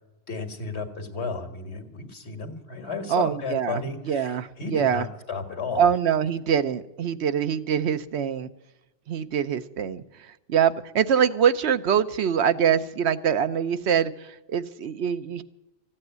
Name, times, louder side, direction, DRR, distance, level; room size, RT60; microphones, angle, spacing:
voice 1, 0.3-5.9, left 4 dB, 85° left, 7 dB, 2.0 m, -33 dB
voice 2, 3.1-5.1 5.8-8.5 9.1-15.4, right 8 dB, 85° right, 11 dB, 1.1 m, -24 dB
14.5 x 8.8 x 9.2 m, 0.95 s
omnidirectional pair, 1.1 m